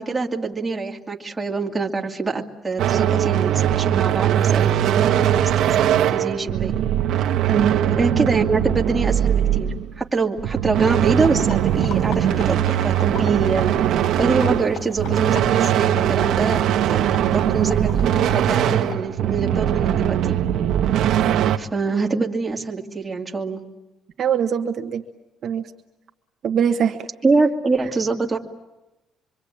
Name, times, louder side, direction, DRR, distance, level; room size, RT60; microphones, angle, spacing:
voice 1, 0.0-6.7 8.0-16.6 16.9-20.4 21.6-23.6 27.2-28.4, right 4 dB, 10° right, 0 dB, 2.5 m, -24 dB
sound 1, 2.8-10.0 10.4-21.6, right 10 dB, 70° right, 1.1 m, -20 dB
voice 2, 7.5-8.0 24.2-25.0 25.4-25.7 26.4-27.1, right 8 dB, 45° right, 4 dB, 1.3 m, -22 dB
sound 2, 10.8-18.9, left 8 dB, 80° left, 3.9 m, -39 dB
25.5 x 25.0 x 8.7 m, 0.99 s
cardioid pair, 160°, 0 cm